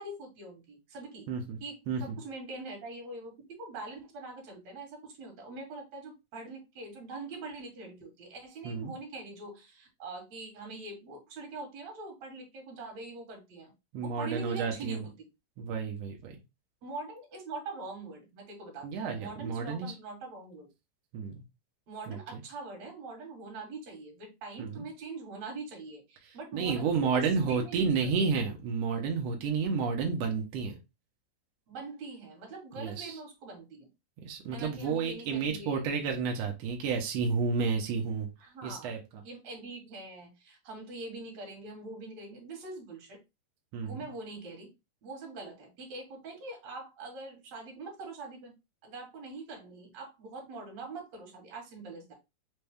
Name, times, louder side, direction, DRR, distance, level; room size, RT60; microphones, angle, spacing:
voice 1, 0.0-1.3 1.6-13.7 14.0-15.1 16.8-20.7 21.9-28.3 31.7-33.9 34.5-36.1 38.4-38.9 39.2-43.2 43.8-44.7 45.0-48.5 48.8-52.1, right 3 dB, 60° right, 2.3 m, -43 dB
voice 2, 1.3-1.6 1.9-2.2 8.6-8.9 13.9-15.0 15.6-16.3 18.8-19.9 21.1-21.4 22.1-22.4 24.6-24.9 26.5-30.8 32.8-33.2 34.2-38.3 38.6-39.2 43.7-44.0, right 5 dB, 80° right, 1.5 m, -31 dB
5.3 x 2.2 x 3.4 m
omnidirectional pair, 3.8 m